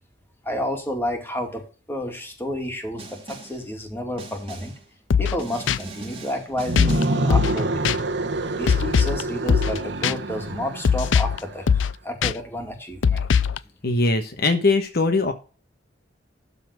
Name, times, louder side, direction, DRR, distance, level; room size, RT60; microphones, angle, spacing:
voice 1, 0.4-4.7 5.2-8.0 8.6-11.7 12.0-13.3, equal, 10° left, 3 dB, 2.3 m, -30 dB
Snare drum, 3.0-3.7 4.2-4.9 5.4-7.3, right 3 dB, 30° right, 3.8 m, -40 dB
sound 1, 5.1-5.4 5.7-5.8 6.8-7.0 7.3-7.6 7.8-8.0 8.7-9.2 9.5-9.8 10.0-10.1 10.8-11.4 11.7-11.9 12.2-12.3 13.0-13.6, left 6 dB, 85° left, 0.4 m, -20 dB
sound 2, 6.5-11.6, right 2 dB, 70° right, 1.3 m, -27 dB
voice 2, 13.8-15.3, left 3 dB, 55° left, 7 dB, 1.2 m, -21 dB
12.5 x 4.2 x 6.2 m, 0.36 s
head